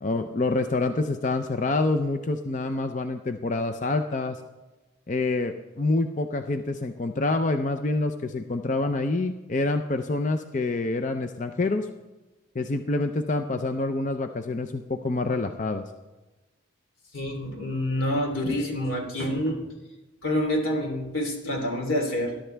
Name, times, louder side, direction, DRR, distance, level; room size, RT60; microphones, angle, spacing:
voice 1, 0.0-4.4 5.1-11.9 12.5-15.8, left 2 dB, 40° left, 7 dB, 0.5 m, -27 dB
voice 2, 17.1-19.6 20.2-22.4, left 1 dB, 90° left, 1 dB, 3.2 m, -27 dB
20.5 x 11.5 x 3.4 m, 1.1 s
head